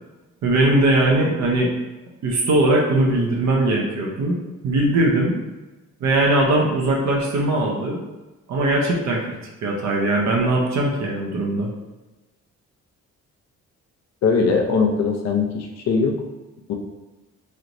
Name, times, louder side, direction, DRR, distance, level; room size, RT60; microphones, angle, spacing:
voice 1, 0.4-1.7 2.2-4.4 4.6-5.4 6.0-8.0 8.5-11.7, right 2 dB, 65° right, -1 dB, 0.7 m, -20 dB
voice 2, 14.2-16.1 16.7-16.8, left 4 dB, 60° left, 2 dB, 0.6 m, -20 dB
3.2 x 2.9 x 2.6 m, 1.1 s
cardioid pair, 90°, 30 cm